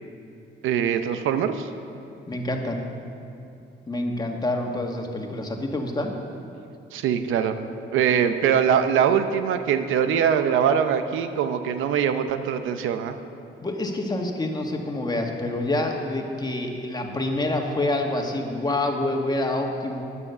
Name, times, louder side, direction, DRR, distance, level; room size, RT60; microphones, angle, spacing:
voice 1, 0.6-1.7 6.9-7.7 7.9-13.2, right 8 dB, 85° right, 9 dB, 0.7 m, -22 dB
voice 2, 2.3-2.8 3.9-6.1 13.6-20.0, left 2 dB, 20° left, 2 dB, 1.7 m, -27 dB
12.0 x 9.9 x 6.8 m, 2.6 s
cardioid pair, 90°, 20 cm